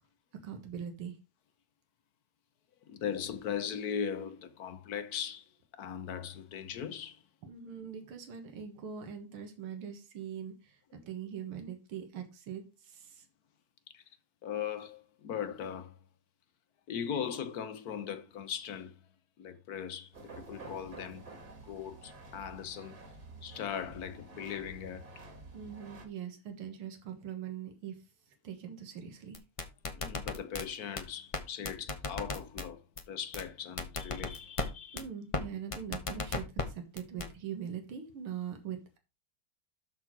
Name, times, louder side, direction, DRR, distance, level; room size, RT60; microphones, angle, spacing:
voice 1, 0.4-1.2 7.4-13.3 25.5-28.0 28.4-29.4 34.9-39.0, right 8 dB, 85° right, 2.3 m, -42 dB
voice 2, 2.9-7.2 13.9-14.0 14.4-16.0 16.9-19.0 19.4-23.0 23.4-25.2 29.9-35.0, left 8 dB, 55° left, 1.2 m, -39 dB
sound 1, 20.1-26.1, right 3 dB, 50° right, 2.3 m, -50 dB
sound 2, 29.3-30.6 31.0-31.1 31.3-31.4 31.6-32.6 33.0-33.1 33.3-33.4 33.8-34.7 35.0-35.1 35.3-35.4 35.7-36.6 37.0-37.3, left 3 dB, 30° left, 0.6 m, -34 dB
12.5 x 4.2 x 4.6 m
omnidirectional pair, 2.3 m